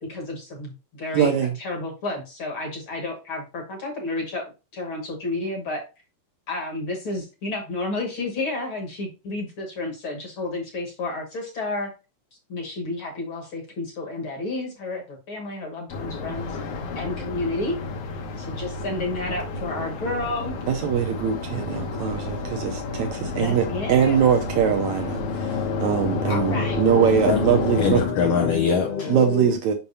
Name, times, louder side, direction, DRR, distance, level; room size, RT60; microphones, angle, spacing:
voice 1, 0.0-5.8 6.5-11.9 12.5-16.6 17.0-17.8 18.4-20.6 23.3-24.3 26.3-26.8, left 2 dB, 50° left, 1.7 m, -31 dB
voice 2, 1.1-1.6 20.7-28.1 29.1-29.7, right 8 dB, 75° right, 1.8 m, -22 dB
sound 1, 15.9-28.1, left 4 dB, 70° left, 2.3 m, -30 dB
voice 3, 27.8-29.6, left 6 dB, 85° left, 1.4 m, -23 dB
7.0 x 5.7 x 2.7 m
omnidirectional pair, 3.8 m